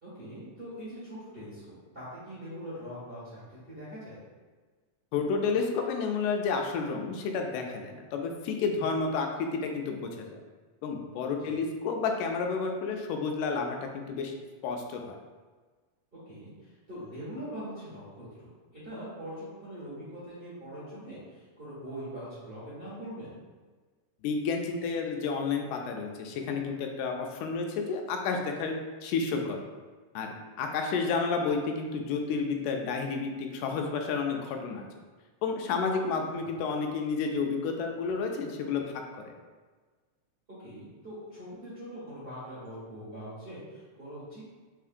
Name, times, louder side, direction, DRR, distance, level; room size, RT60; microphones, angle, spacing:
voice 1, 0.0-4.2 11.3-11.5 16.2-23.3 36.2-36.6 40.5-44.4, equal, 35° right, -12 dB, 0.9 m, -42 dB
voice 2, 5.1-10.3 10.8-14.3 14.6-15.2 24.2-29.6 30.2-30.3 30.6-34.9 35.4-38.9 39.3-39.4, left 4 dB, 85° left, 3 dB, 2.1 m, -31 dB
4.6 x 3.4 x 2.5 m, 1.4 s
omnidirectional pair, 3.6 m